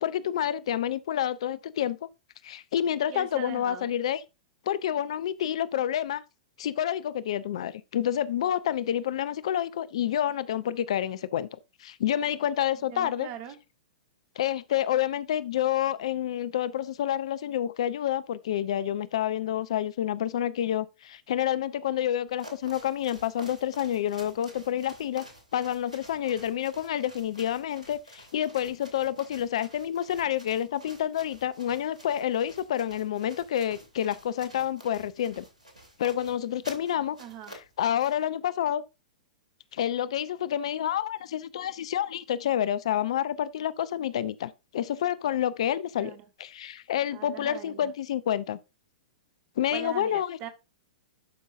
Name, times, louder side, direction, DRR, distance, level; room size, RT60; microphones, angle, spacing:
voice 1, 0.0-2.1 2.4-4.2 4.7-6.2 6.6-11.5 11.8-13.3 14.4-25.2 25.5-35.4 36.0-37.2 37.5-38.8 39.7-46.1 46.4-48.6 49.6-50.4, left 10 dB, 55° left, 0.4 m, -28 dB
voice 2, 3.1-3.9 12.9-13.6 37.2-37.5 46.0-46.2 47.1-47.9 49.7-50.5, right 9 dB, 35° right, 1.5 m, -41 dB
sound 1, 22.3-38.3, equal, 80° right, 2.7 m, -50 dB
11.5 x 5.4 x 2.6 m
figure-of-eight pair, 105°, 4 cm